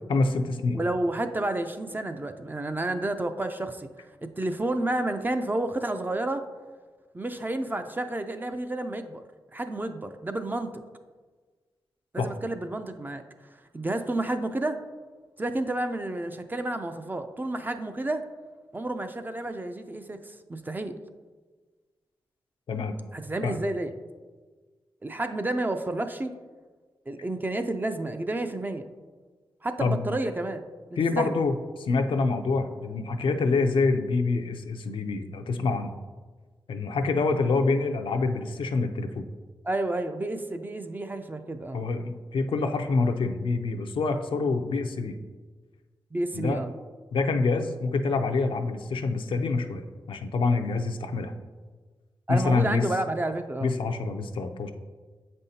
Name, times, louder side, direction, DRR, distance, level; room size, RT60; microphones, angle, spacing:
voice 1, 0.1-0.8 12.2-12.3 22.7-22.9 23.4-23.6 29.8-30.0 31.0-35.9 36.7-39.3 41.7-45.2 46.3-46.6 47.1-51.3 52.3-52.8 53.6-54.7, left 3 dB, 75° left, 6 dB, 0.5 m, -26 dB
voice 2, 0.7-3.9 4.2-6.4 7.1-9.2 9.5-10.7 12.1-13.2 13.7-14.8 15.4-18.2 18.7-21.0 23.1-23.9 25.0-26.3 27.1-28.9 29.6-30.6 31.2-31.4 39.6-41.8 46.1-46.8 52.3-53.7, right 2 dB, 20° right, 8 dB, 0.5 m, -30 dB
7.3 x 5.3 x 2.8 m, 1.4 s
cardioid pair, 65°, 9 cm